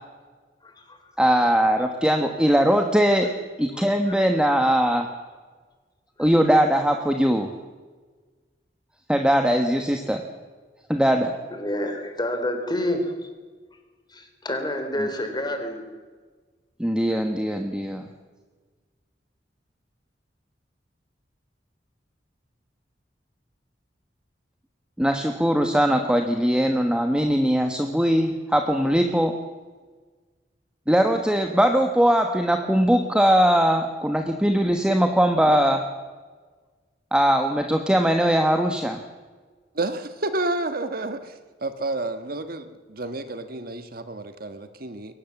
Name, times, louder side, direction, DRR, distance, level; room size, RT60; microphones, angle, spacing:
voice 1, 0.6-1.0 3.7-3.9 6.2-6.3 11.5-13.3 14.1-15.8 17.1-17.2, left 1 dB, 25° left, 5 dB, 3.7 m, -28 dB
voice 2, 1.2-3.3 3.6-5.1 6.2-7.5 9.1-10.2 10.9-11.3 15.0-15.1 16.8-18.0 25.0-29.3 30.9-35.8 37.1-39.0, equal, 5° right, 4 dB, 1.3 m, -20 dB
voice 3, 39.7-41.3 41.6-45.1, right 2 dB, 55° right, 9 dB, 1.5 m, -30 dB
22.5 x 19.0 x 7.2 m, 1.4 s
head